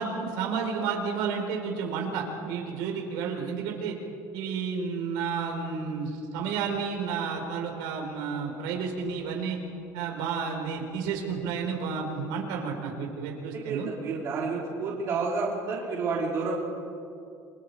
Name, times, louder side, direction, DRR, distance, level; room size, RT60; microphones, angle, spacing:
voice 1, 0.0-3.9 4.3-9.6 9.9-13.9, right 5 dB, 75° right, 1 dB, 4.5 m, -31 dB
voice 2, 13.5-16.5, right 4 dB, 35° right, -4 dB, 3.9 m, -30 dB
29.5 x 23.5 x 5.0 m, 2.5 s
cardioid pair, 180°, 8 cm